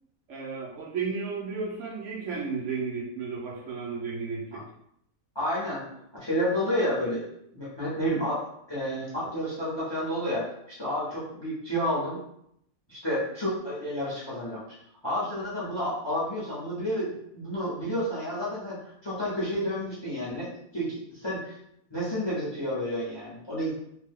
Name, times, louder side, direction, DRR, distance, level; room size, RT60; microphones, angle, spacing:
voice 1, 0.3-4.6, right 5 dB, 65° right, -3 dB, 0.8 m, -33 dB
voice 2, 5.3-5.8 6.1-7.2 7.5-12.2 12.9-14.6 15.0-18.8 19.0-21.6 21.9-23.7, equal, 25° left, -8 dB, 0.7 m, -30 dB
2.5 x 2.2 x 3.4 m, 0.75 s
omnidirectional pair, 1.5 m